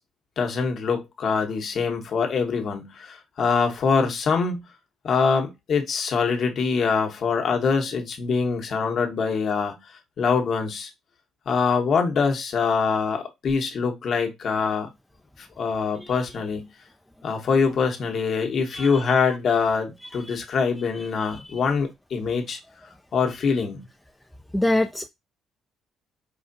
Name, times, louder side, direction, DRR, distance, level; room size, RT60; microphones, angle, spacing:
voice 1, 0.4-4.7 5.0-9.8 10.2-10.9 11.5-14.9 15.4-16.7 17.2-22.6 23.1-23.8, left 5 dB, 55° left, 1.0 m, -24 dB
voice 2, 24.5-25.1, left 1 dB, 5° left, 0.3 m, -24 dB
4.8 x 2.5 x 2.6 m
cardioid pair, 85°, 0 cm